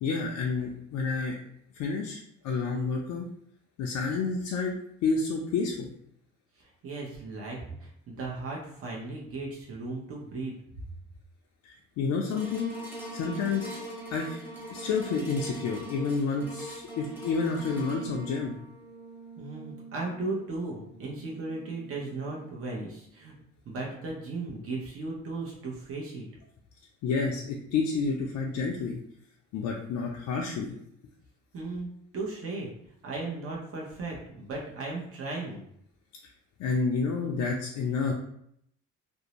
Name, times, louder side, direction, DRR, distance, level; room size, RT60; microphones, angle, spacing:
voice 1, 0.0-1.4 1.7-3.3 3.8-5.9 11.6-12.7 13.1-13.7 14.1-14.4 14.7-18.6 27.0-29.0 29.5-30.8 36.6-38.1, left 4 dB, 75° left, -1 dB, 0.5 m, -29 dB
voice 2, 6.6-10.6 19.4-23.3 23.7-26.3 31.5-32.7 33.0-35.6, right 3 dB, 50° right, -2 dB, 0.7 m, -36 dB
sound 1, 12.3-22.7 23.3-23.4, right 1 dB, 5° right, 0.9 m, -43 dB
2.6 x 2.0 x 2.9 m, 0.72 s
cardioid pair, 90°, 30 cm